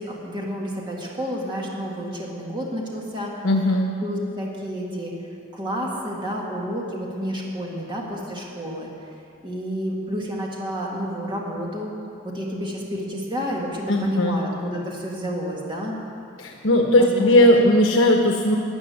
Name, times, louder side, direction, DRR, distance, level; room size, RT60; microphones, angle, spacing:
voice 1, 0.0-3.3 4.0-5.1 5.5-8.9 9.4-11.9 12.2-16.0 17.0-17.5, equal, 25° right, -3 dB, 2.0 m, -30 dB
voice 2, 3.4-3.9 13.9-14.4 16.4-18.6, left 1 dB, 80° left, 2 dB, 1.1 m, -18 dB
13.0 x 8.8 x 9.4 m, 2.5 s
head